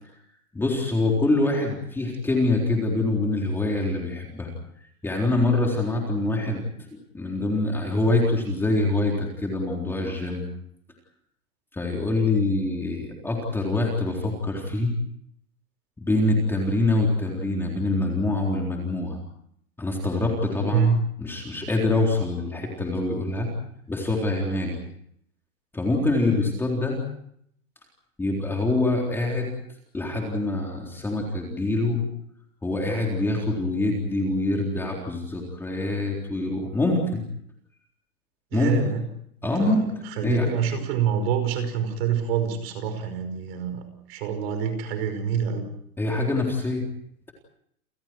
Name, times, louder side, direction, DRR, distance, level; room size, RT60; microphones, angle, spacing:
voice 1, 0.5-4.5 5.0-6.6 6.9-10.5 11.7-14.9 16.0-19.2 19.8-20.9 21.2-23.5 23.9-24.8 25.7-27.0 28.2-29.5 29.9-32.0 32.6-37.2 38.5-38.7 39.4-39.9 40.2-40.5 46.0-46.8, left 2 dB, 5° left, 0 dB, 3.8 m, -25 dB
voice 2, 38.5-39.0 39.4-39.8 40.2-43.8 44.1-45.7, right 8 dB, 40° right, 9 dB, 5.3 m, -26 dB
30.0 x 28.0 x 4.6 m, 0.70 s
supercardioid pair, 165°, 45 cm